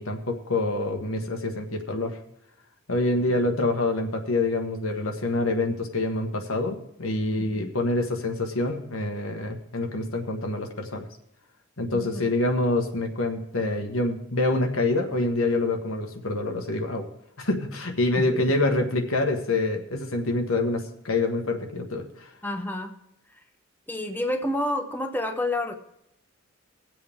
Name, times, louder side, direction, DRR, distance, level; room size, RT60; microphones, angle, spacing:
voice 1, 0.0-2.2 2.9-11.1 11.8-17.1 17.4-22.3, left 2 dB, 85° left, 3 dB, 1.5 m, -26 dB
voice 2, 7.4-7.7 11.9-12.3 18.1-18.4 22.4-22.9 23.9-25.7, left 1 dB, 10° left, 5 dB, 0.8 m, -29 dB
20.0 x 7.8 x 3.6 m, 0.79 s
head